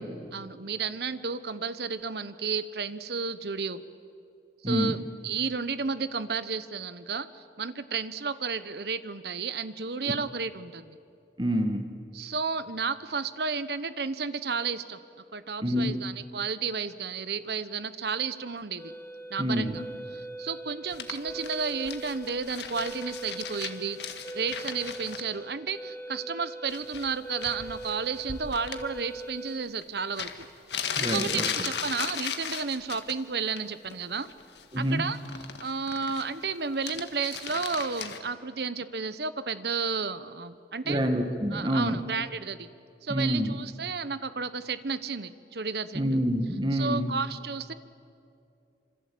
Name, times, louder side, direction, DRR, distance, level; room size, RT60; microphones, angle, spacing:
voice 1, 0.3-3.8 4.6-11.0 12.1-15.0 15.3-18.9 19.3-19.8 20.1-24.0 24.3-30.5 31.0-34.3 34.8-35.2 35.6-41.0 41.5-42.7 43.0-46.0 46.7-47.7, right 5 dB, 65° right, 13 dB, 1.0 m, -32 dB
voice 2, 4.6-5.0 11.4-12.0 15.6-16.0 19.4-19.8 31.0-31.4 34.7-35.0 40.8-42.0 43.1-43.6 45.9-47.1, equal, 25° right, 6 dB, 1.6 m, -27 dB
sound 1, 18.8-29.6, right 2 dB, 15° left, 3.1 m, -41 dB
sound 2, 20.9-25.2 26.7-27.1 27.4-28.8 29.8-29.9 30.2-33.2 33.5-33.9 34.2-36.4 36.7-38.2, left 7 dB, 75° left, 1.7 m, -36 dB
26.5 x 25.5 x 8.5 m, 2.5 s
head